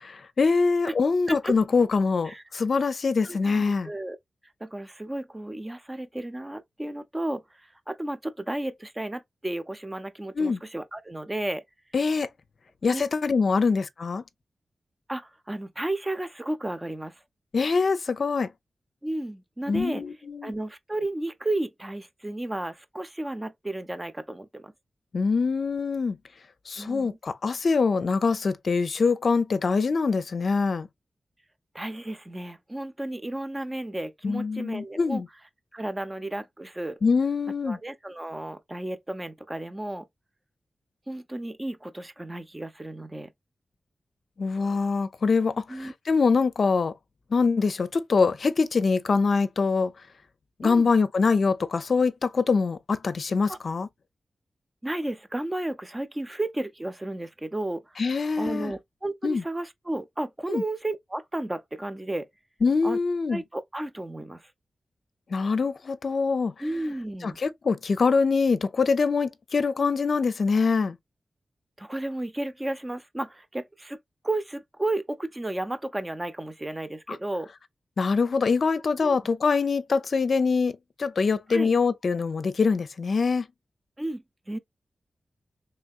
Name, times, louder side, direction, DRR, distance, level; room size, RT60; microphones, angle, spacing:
voice 1, 0.4-3.9 10.4-10.6 11.9-12.3 12.8-14.2 17.5-18.5 19.7-20.5 25.1-26.2 26.7-30.9 34.2-35.3 37.0-37.8 44.4-46.9 47.3-49.9 50.6-53.9 58.0-58.7 59.2-59.4 60.5-60.6 62.6-63.4 65.3-66.5 67.2-71.0 78.0-83.5, left 4 dB, 65° left, 0.5 m, -24 dB
voice 2, 3.2-4.2 4.6-11.6 12.8-13.0 15.1-17.2 19.0-20.0 20.4-24.7 26.8-27.2 31.7-35.2 35.7-37.0 37.6-40.1 41.1-43.3 45.7-45.9 50.6-50.9 53.5-53.6 54.8-58.0 58.4-62.3 62.8-63.0 63.3-64.5 66.6-67.4 71.8-74.0 74.2-77.5 79.0-79.2 81.5-81.7 84.0-84.6, right 1 dB, 20° right, 0.7 m, -33 dB
3.4 x 3.3 x 2.3 m
cardioid pair, 50°, 0 cm